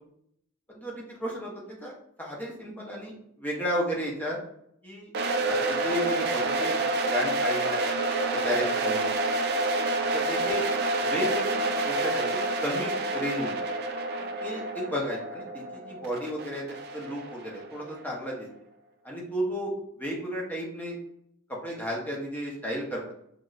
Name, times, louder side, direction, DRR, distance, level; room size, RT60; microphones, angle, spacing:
voice 1, 0.7-3.1 3.4-4.4 4.8-5.1 5.4-6.8 7.1-7.8 8.3-9.1 10.1-10.7 11.0-13.6 14.2-16.6 16.9-18.5 19.0-19.7 20.0-21.0 21.6-23.1, equal, 10° left, -2 dB, 0.6 m, -33 dB
sound 1, 5.1-18.0, right 2 dB, 50° right, 0.3 m, -28 dB
2.9 x 2.4 x 2.4 m, 0.75 s
head